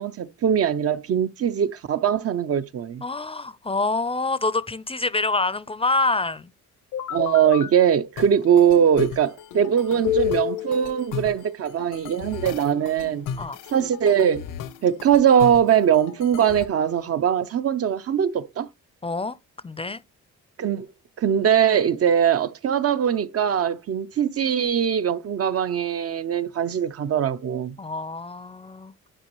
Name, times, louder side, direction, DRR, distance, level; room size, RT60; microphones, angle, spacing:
voice 1, 0.0-3.0 7.1-13.3 13.7-14.5 14.8-18.7 20.6-20.9 21.2-27.8, right 8 dB, 50° right, 0.7 m, -21 dB
voice 2, 3.0-6.5 13.4-13.6 19.0-19.4 19.6-20.0 27.8-28.9, left 3 dB, 20° left, 0.5 m, -26 dB
sound 1, 6.9-7.7 8.2-16.7, left 10 dB, 85° left, 1.0 m, -32 dB
10.0 x 5.2 x 3.0 m
cardioid pair, 90°, 30 cm